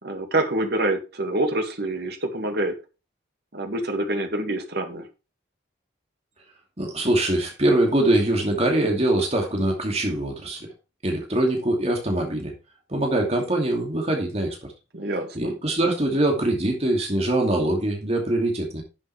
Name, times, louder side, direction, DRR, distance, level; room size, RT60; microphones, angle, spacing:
voice 1, 0.0-2.7 3.5-5.1 14.9-15.5, right 2 dB, 60° right, 5 dB, 2.2 m, -26 dB
voice 2, 6.8-10.7 11.0-12.5 12.9-14.7 15.3-18.8, right 1 dB, 35° right, 1 dB, 2.6 m, -23 dB
11.0 x 7.7 x 3.4 m, 0.29 s
head